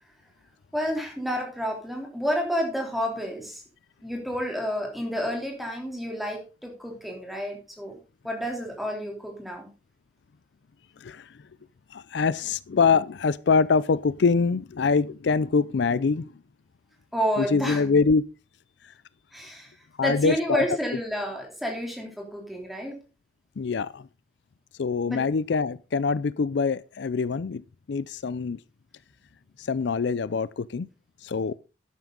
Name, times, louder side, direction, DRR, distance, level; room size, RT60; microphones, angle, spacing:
voice 1, 0.7-3.6 4.0-8.0 8.2-9.7 17.1-17.8 19.3-23.0 25.0-25.2, equal, ahead, 3.2 m, -30 dB
voice 2, 11.9-16.3 17.4-18.2 20.0-20.6 23.6-24.1 24.8-27.6 27.9-28.6 29.6-30.9 31.2-31.5, left 5 dB, 70° left, 0.4 m, -24 dB
12.0 x 9.5 x 3.9 m
head